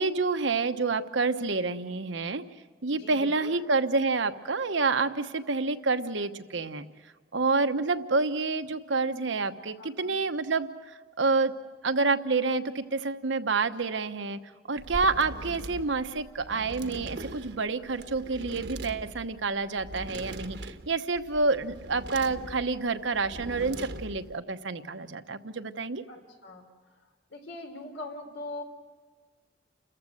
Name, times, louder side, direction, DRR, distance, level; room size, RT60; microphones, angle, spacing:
voice 1, 0.0-2.4 2.8-6.9 7.3-11.5 11.8-14.4 14.7-26.0, right 3 dB, 85° right, 9 dB, 1.1 m, -28 dB
voice 2, 2.9-3.6 9.8-10.1 26.1-26.7 27.3-28.6, left 2 dB, 85° left, 4 dB, 3.6 m, -41 dB
sound 1, 14.8-24.4, right 1 dB, 65° right, 1.1 m, -41 dB
29.0 x 14.5 x 7.9 m, 1.4 s
head